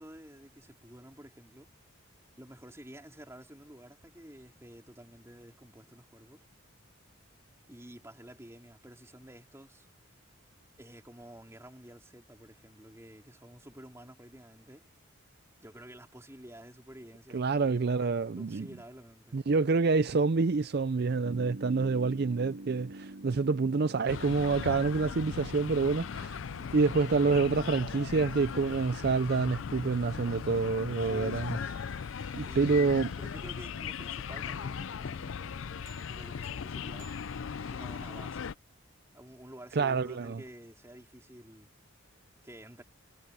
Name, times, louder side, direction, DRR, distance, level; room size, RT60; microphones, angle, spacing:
voice 1, 0.0-1.7 2.4-6.4 7.7-9.9 10.8-14.9 15.6-19.4 26.5-27.0 31.0-31.8 32.5-37.1 37.7-38.5 39.1-41.7 42.4-42.8, equal, 15° right, 4.0 m, -50 dB
voice 2, 17.3-18.7 19.3-26.4 26.7-31.6 32.3-33.1 39.8-40.4, right 4 dB, 50° right, 0.4 m, -27 dB
sound 1, 21.2-34.2 35.9-38.0, right 2 dB, 65° right, 2.5 m, -51 dB
sound 2, 24.1-38.5, left 6 dB, 65° left, 0.4 m, -38 dB
head